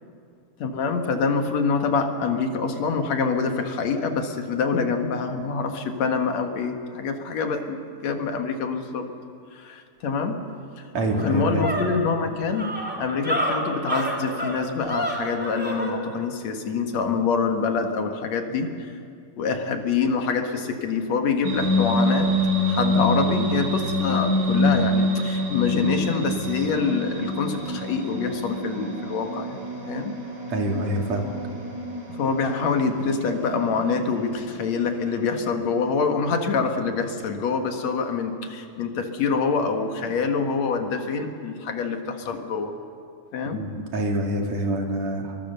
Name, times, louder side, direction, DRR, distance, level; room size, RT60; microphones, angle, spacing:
voice 1, 0.6-9.1 9.5-10.4 10.8-10.9 11.2-18.9 19.4-22.4 22.6-30.1 32.1-42.8 43.3-43.7, left 5 dB, 60° left, 5 dB, 2.7 m, -26 dB
sound 1, 10.5-10.6 10.9-15.9, right 1 dB, 5° right, 2.7 m, -29 dB
voice 2, 10.9-11.7 30.5-31.3 43.5-45.4, right 1 dB, 55° right, 1 dB, 3.7 m, -26 dB
sound 2, 21.4-35.4, left 1 dB, 30° right, 5.2 m, -26 dB
26.5 x 23.5 x 6.8 m, 2.4 s
omnidirectional pair, 3.7 m